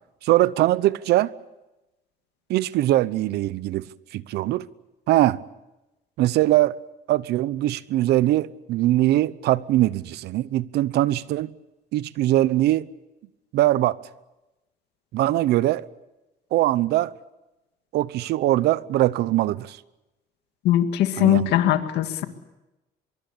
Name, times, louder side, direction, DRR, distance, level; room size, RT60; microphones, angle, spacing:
voice 1, 0.2-1.3 2.5-4.7 5.1-5.4 6.2-6.7 7.1-11.5 11.9-12.9 13.5-14.0 15.1-15.9 16.5-17.1 17.9-19.8 21.2-21.5, right 15 dB, 80° right, 0.9 m, -21 dB
voice 2, 20.6-22.2, left 12 dB, 85° left, 2.1 m, -20 dB
24.0 x 23.0 x 8.6 m
cardioid pair, 110°, 17 cm